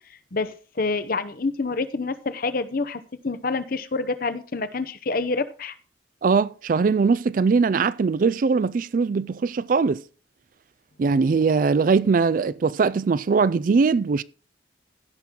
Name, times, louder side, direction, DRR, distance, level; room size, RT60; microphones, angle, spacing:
voice 1, 0.3-5.7, left 3 dB, 50° left, 0.8 m, -27 dB
voice 2, 6.2-10.0 11.0-14.2, right 4 dB, 45° right, 0.3 m, -21 dB
16.0 x 6.0 x 3.8 m
head